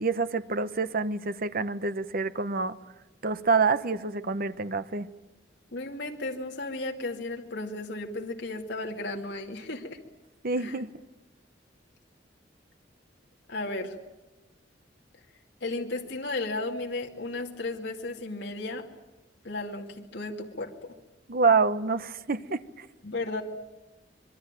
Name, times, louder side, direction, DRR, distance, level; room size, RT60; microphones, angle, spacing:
voice 1, 0.0-2.8 3.2-5.1 10.4-10.9 21.3-22.9, right 4 dB, 55° right, 13 dB, 1.1 m, -27 dB
voice 2, 5.7-10.0 10.6-10.8 13.5-13.9 15.6-18.9 19.4-20.7 23.0-23.4, left 2 dB, 70° left, 1 dB, 2.5 m, -34 dB
25.5 x 22.5 x 9.1 m, 1.1 s
head